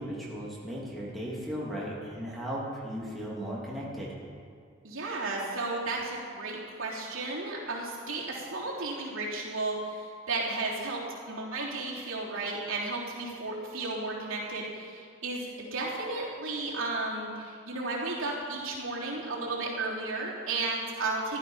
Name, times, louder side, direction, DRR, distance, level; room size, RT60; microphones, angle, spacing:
voice 1, 0.0-4.1, equal, ahead, -6 dB, 2.8 m, -36 dB
voice 2, 4.8-11.0 11.3-21.4, right 3 dB, 75° right, -5 dB, 3.4 m, -33 dB
15.5 x 12.0 x 5.7 m, 2.4 s
head